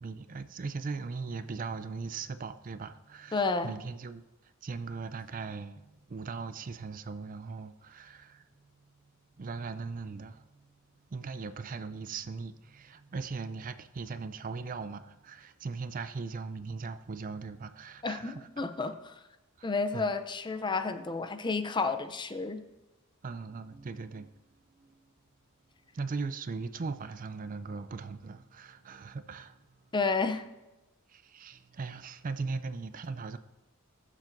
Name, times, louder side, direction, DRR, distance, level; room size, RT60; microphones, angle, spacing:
voice 1, 0.0-4.2 4.6-8.4 9.4-10.5 11.1-18.5 19.6-20.1 23.2-24.3 24.8-24.9 25.9-29.6 31.1-33.4, right 4 dB, 40° right, 0.4 m, -39 dB
voice 2, 3.3-3.7 18.0-19.2 19.6-22.6 29.9-30.4, left 4 dB, 20° left, 0.5 m, -31 dB
20.5 x 7.4 x 2.6 m
head